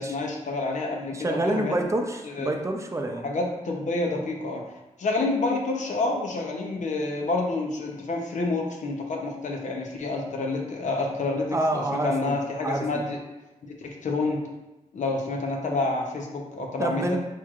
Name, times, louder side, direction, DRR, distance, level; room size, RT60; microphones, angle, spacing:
voice 1, 0.0-1.7 2.2-2.5 3.2-4.6 5.0-11.5 11.7-13.2 13.6-14.4 14.9-17.0, left 3 dB, 80° left, 1 dB, 0.8 m, -28 dB
voice 2, 1.1-3.3 11.5-12.4 12.6-12.9 16.8-17.2, right 1 dB, 25° right, 3 dB, 0.5 m, -27 dB
4.5 x 4.4 x 2.4 m, 0.98 s
wide cardioid pair, 100°, 13 cm